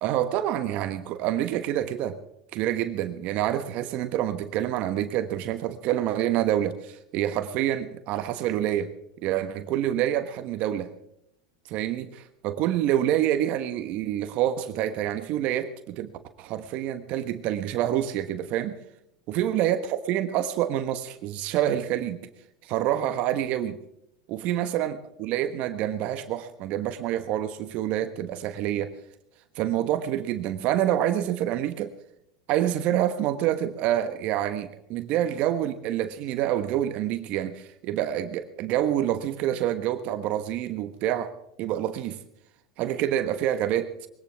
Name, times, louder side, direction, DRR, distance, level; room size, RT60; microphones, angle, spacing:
voice 1, 0.0-2.2 2.5-8.9 9.2-10.9 11.7-16.1 16.4-18.8 19.3-22.2 22.6-23.8 24.3-28.9 29.5-31.9 32.5-41.3 41.6-42.2 42.8-44.1, right 11 dB, 50° right, 9 dB, 1.3 m, -27 dB
21.5 x 17.5 x 3.5 m, 0.78 s
hypercardioid pair, 95°, 3 cm